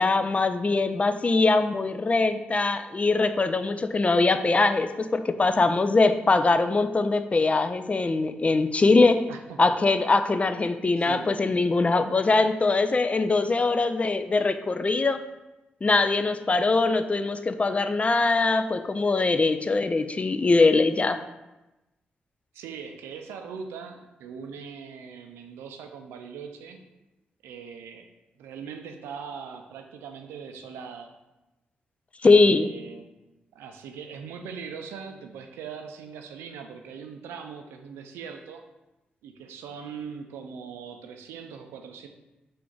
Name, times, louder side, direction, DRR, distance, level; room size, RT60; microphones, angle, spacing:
voice 1, 0.0-9.2 9.6-15.2 15.8-21.2 32.2-32.7, left 3 dB, 35° left, 10 dB, 0.3 m, -22 dB
voice 2, 9.3-9.6 11.0-11.3 22.5-26.8 27.4-28.1 28.4-31.1 32.2-33.1 33.5-38.6 39.2-42.1, right 6 dB, 85° right, 5 dB, 0.4 m, -41 dB
3.7 x 2.5 x 4.5 m, 1.0 s
supercardioid pair, 45°, 4 cm